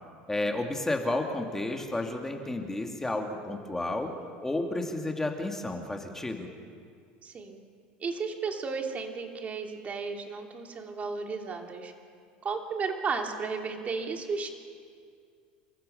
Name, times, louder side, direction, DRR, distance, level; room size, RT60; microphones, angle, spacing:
voice 1, 0.3-4.1 4.4-6.5, left 2 dB, 10° left, 3 dB, 2.5 m, -31 dB
voice 2, 7.2-7.6 8.0-11.9 12.4-14.5, right 4 dB, 30° right, 3 dB, 3.0 m, -34 dB
29.0 x 15.0 x 6.7 m, 2.2 s
supercardioid pair, 95°, 4 cm